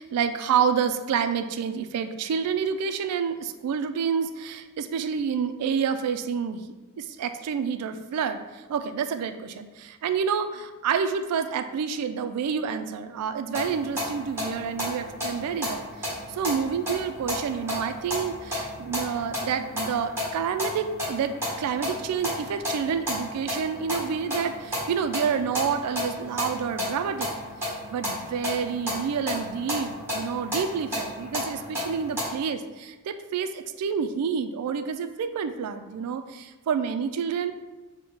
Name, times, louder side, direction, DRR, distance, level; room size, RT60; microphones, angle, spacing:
voice 1, 0.0-6.6 7.0-8.4 8.7-21.3 21.6-27.3 27.9-37.5, right 7 dB, 85° right, 13 dB, 0.3 m, -28 dB
sound 1, 13.5-32.3, left 1 dB, 10° right, 1.2 m, -33 dB
3.9 x 2.1 x 4.4 m, 1.2 s
head